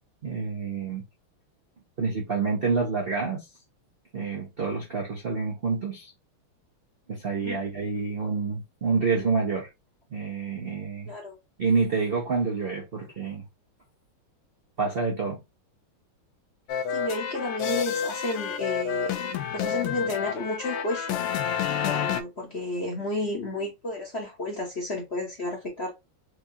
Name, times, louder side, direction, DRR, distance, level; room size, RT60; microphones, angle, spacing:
voice 1, 0.2-1.0 2.0-3.5 4.1-6.1 7.1-9.7 10.1-11.1 11.6-13.4 14.8-15.4, right 4 dB, 65° right, 0.5 m, -28 dB
voice 2, 11.1-11.4 16.9-19.2 19.5-21.3 21.8-25.9, left 2 dB, 45° left, 0.8 m, -32 dB
sound 1, 16.7-22.2, left 8 dB, 90° left, 1.5 m, -29 dB
4.7 x 2.4 x 2.7 m
omnidirectional pair, 2.4 m